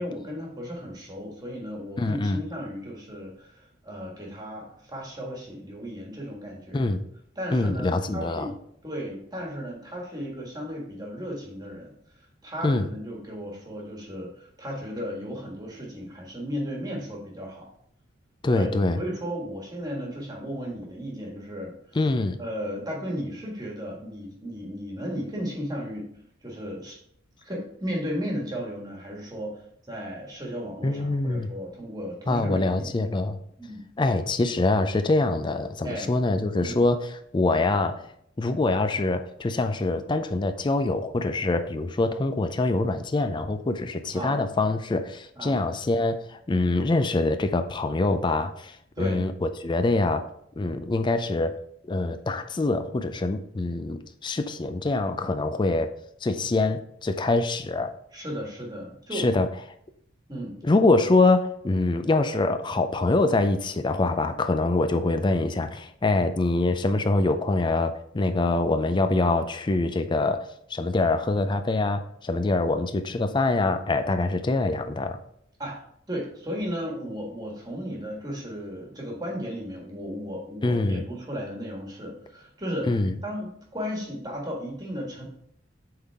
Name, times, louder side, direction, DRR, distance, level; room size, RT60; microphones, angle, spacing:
voice 1, 0.0-6.9 7.3-8.6 8.8-11.9 12.4-17.7 18.5-18.7 19.0-22.0 22.4-26.1 26.4-27.0 27.4-32.9 33.6-33.8 35.8-36.1 36.6-36.8 44.1-44.4 45.4-45.6 49.0-49.2 58.1-59.3 60.3-60.6 75.6-75.8 76.1-82.9 83.2-85.3, equal, 20° right, -2 dB, 1.6 m, -35 dB
voice 2, 2.0-2.4 6.7-7.0 7.5-8.5 12.6-12.9 18.4-19.0 21.9-22.4 30.8-31.5 32.3-33.4 34.0-38.1 38.4-50.3 50.6-55.9 56.2-57.9 59.1-59.5 60.6-75.2 80.6-81.0 82.9-83.1, left 2 dB, 25° left, 9 dB, 0.4 m, -24 dB
7.8 x 3.8 x 3.5 m, 0.68 s
head